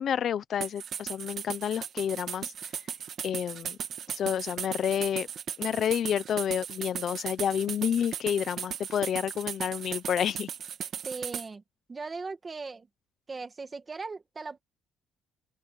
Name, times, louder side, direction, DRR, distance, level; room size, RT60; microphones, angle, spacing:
voice 1, 0.0-2.5 3.2-3.8 4.1-5.3 5.6-10.5, left 9 dB, 45° left, 0.7 m, -29 dB
sound 1, 0.6-11.5, right 8 dB, 45° right, 2.4 m, -37 dB
voice 2, 11.0-11.6 11.9-12.9 13.3-14.6, right 4 dB, 20° right, 2.0 m, -38 dB
open air
cardioid pair, 155°, 0 cm